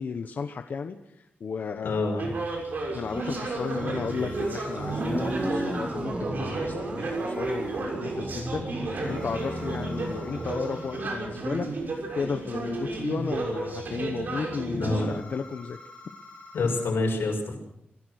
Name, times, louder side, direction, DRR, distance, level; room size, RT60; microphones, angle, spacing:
voice 1, 0.0-2.2 2.9-11.7 12.2-15.8, left 5 dB, 55° left, 6 dB, 1.1 m, -34 dB
voice 2, 1.8-2.2 14.7-15.1 16.5-17.6, left 3 dB, 90° left, 1 dB, 6.4 m, -27 dB
sound 1, 2.2-15.0, right 2 dB, 55° right, 6.2 m, -33 dB
sound 2, 3.0-5.1 9.0-11.1 15.0-16.9, left 3 dB, 25° left, 7.1 m, -47 dB
sound 3, 4.1-10.9, right 1 dB, 30° right, 3.7 m, -34 dB
28.0 x 16.0 x 6.5 m, 0.81 s
wide cardioid pair, 175°, 4 cm